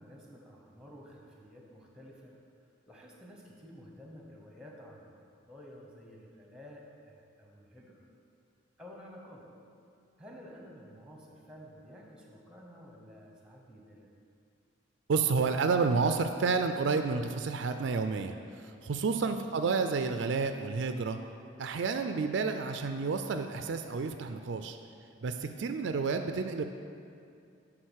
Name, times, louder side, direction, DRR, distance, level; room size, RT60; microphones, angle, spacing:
voice 1, 0.0-2.4 2.9-8.0 8.8-9.5 10.2-14.1 19.3-19.5, equal, 5° right, -1 dB, 1.0 m, -51 dB
voice 2, 15.1-21.2 21.6-24.8 25.2-26.6, right 4 dB, 65° right, 7 dB, 0.4 m, -30 dB
11.0 x 3.7 x 6.4 m, 2.5 s
head